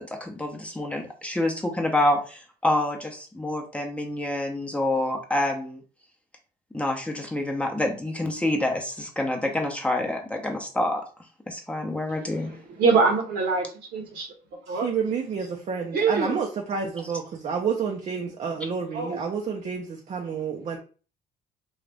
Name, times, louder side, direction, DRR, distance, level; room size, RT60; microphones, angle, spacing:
voice 1, 0.0-5.8 6.7-11.0 11.5-12.5, left 1 dB, 5° left, 0.7 m, -27 dB
voice 2, 12.8-13.7 13.9-14.3 14.7-14.9 15.9-16.3 18.9-19.2, right 4 dB, 70° right, 1.3 m, -23 dB
voice 3, 14.7-20.8, right 6 dB, 45° right, 0.6 m, -29 dB
3.8 x 2.5 x 3.3 m
cardioid pair, 110°, 17 cm